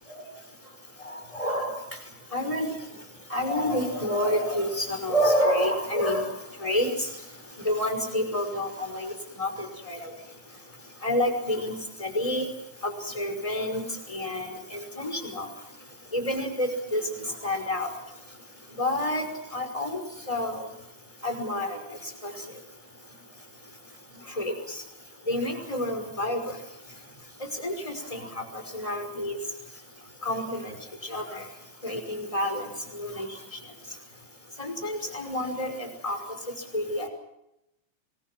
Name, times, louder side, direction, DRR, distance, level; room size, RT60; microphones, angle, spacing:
voice 1, 1.3-1.8 2.3-2.7 3.3-6.3 6.6-7.1 7.6-9.1 9.4-9.5 9.9-10.0 11.0-12.5 12.8-13.8 14.1-15.5 16.1-17.0 17.4-17.9 18.8-19.3 19.5-20.0 20.3-20.7 21.2-21.8 22.2-22.3 24.4-24.5 25.3-26.4 27.6-28.4 28.7-29.4 30.2-30.7 31.1-31.4 31.8-32.7 32.9-33.3 34.6-36.2 36.7-37.1, left 1 dB, 10° left, 6 dB, 5.5 m, -28 dB
27.5 x 23.5 x 6.1 m, 0.85 s
omnidirectional pair, 3.7 m